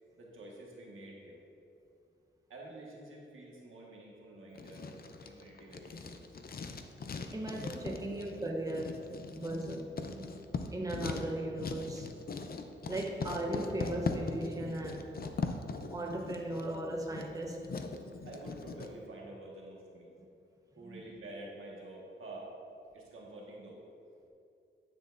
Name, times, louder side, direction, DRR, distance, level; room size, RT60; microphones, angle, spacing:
voice 1, 0.2-1.4 2.5-4.9 5.2-6.2 18.3-20.1 20.8-22.5 22.9-23.8, right 1 dB, 90° right, -2 dB, 1.5 m, -48 dB
Writing, 4.5-18.9, left 4 dB, 50° left, 0.6 m, -40 dB
voice 2, 7.3-9.0 9.3-10.3 10.7-12.1 12.9-15.1 15.9-17.6 20.8-21.0, right 1 dB, 15° right, 0 dB, 0.8 m, -37 dB
10.0 x 9.1 x 2.6 m, 2.7 s
wide cardioid pair, 115°, 20 cm